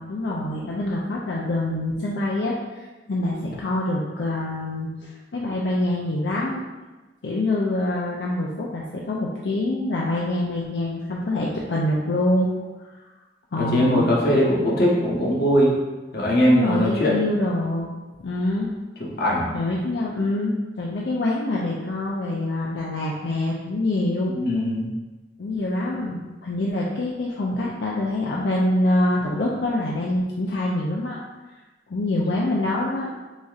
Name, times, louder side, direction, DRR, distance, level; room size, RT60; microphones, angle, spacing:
voice 1, 0.0-6.6 7.2-12.5 13.5-14.1 16.5-17.9 18.2-18.7 19.5-24.3 25.4-31.2 31.9-33.1, left 1 dB, 80° left, -4 dB, 0.5 m, -25 dB
voice 2, 13.5-15.8 16.1-17.1 19.2-19.5 24.3-24.9, equal, 60° left, -3 dB, 1.0 m, -20 dB
6.2 x 2.8 x 2.4 m, 1.2 s
head